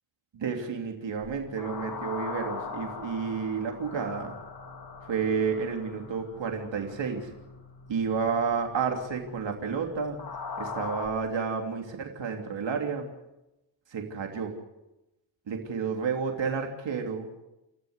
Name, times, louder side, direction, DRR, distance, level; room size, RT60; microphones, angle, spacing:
voice 1, 0.3-4.3 5.0-7.3 7.9-10.2 10.6-13.1 13.9-14.6 15.5-17.3, right 5 dB, 70° right, 2 dB, 3.2 m, -31 dB
sound 1, 1.2-11.1, left 4 dB, 50° left, 2.7 m, -41 dB
29.5 x 14.0 x 8.2 m, 0.96 s
wide cardioid pair, 135°, 47 cm